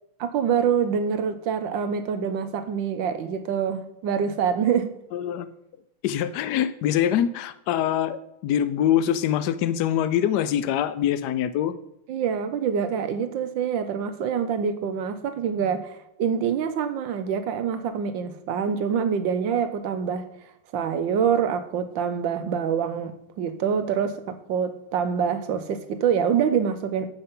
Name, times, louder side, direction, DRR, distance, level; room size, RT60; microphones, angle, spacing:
voice 1, 0.2-5.0 12.1-20.3 20.7-27.1, right 7 dB, 70° right, 1.3 m, -25 dB
voice 2, 5.1-5.5 6.0-11.7, left 10 dB, 75° left, 0.9 m, -24 dB
8.1 x 6.7 x 5.4 m
omnidirectional pair, 2.4 m